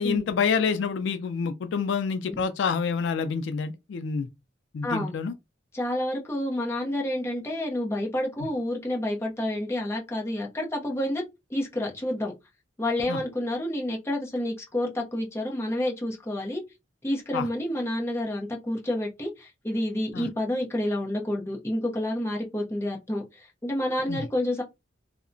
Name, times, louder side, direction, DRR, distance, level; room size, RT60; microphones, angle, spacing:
voice 1, 0.0-4.3 4.7-5.3 13.1-13.2 17.3-17.5 20.1-20.3 24.1-24.3, left 5 dB, 80° left, 0.3 m, -27 dB
voice 2, 4.8-5.1 5.7-11.2 11.5-12.3 12.8-16.6 17.0-24.6, left 1 dB, 15° left, 0.6 m, -29 dB
2.7 x 2.1 x 2.5 m
head